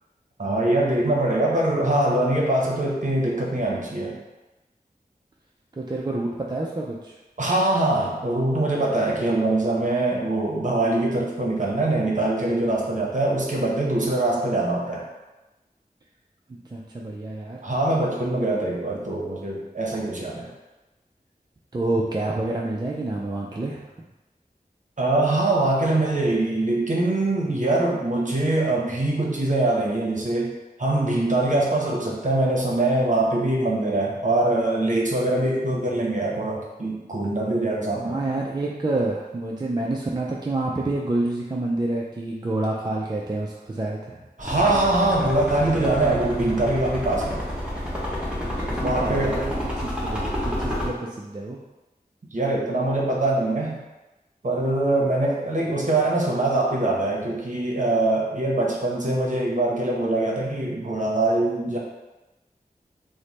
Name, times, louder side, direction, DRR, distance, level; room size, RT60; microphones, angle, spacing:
voice 1, 0.4-4.2 7.4-15.1 17.6-20.5 25.0-30.5 30.8-38.2 44.4-47.4 48.8-49.4 52.3-53.8 54.4-61.8, right 2 dB, 50° right, -3 dB, 0.8 m, -23 dB
voice 2, 5.8-7.1 16.5-17.6 21.7-23.8 38.0-44.2 48.6-51.6, right 2 dB, 25° right, -2 dB, 0.4 m, -28 dB
sound 1, 44.4-50.9, equal, 5° right, 0.9 m, -29 dB
3.1 x 2.1 x 4.0 m, 1.1 s
wide cardioid pair, 50°, 16 cm